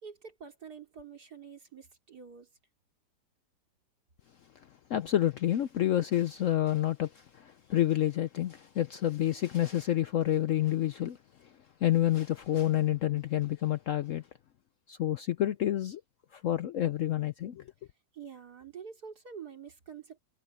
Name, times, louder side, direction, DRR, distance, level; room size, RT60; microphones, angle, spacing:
voice 1, 0.0-2.5 18.1-20.2, right 6 dB, 65° right, 3.8 m, -47 dB
voice 2, 4.6-14.3 14.9-16.0 16.3-17.7, left 12 dB, 65° left, 0.8 m, -29 dB
omnidirectional pair, 1.8 m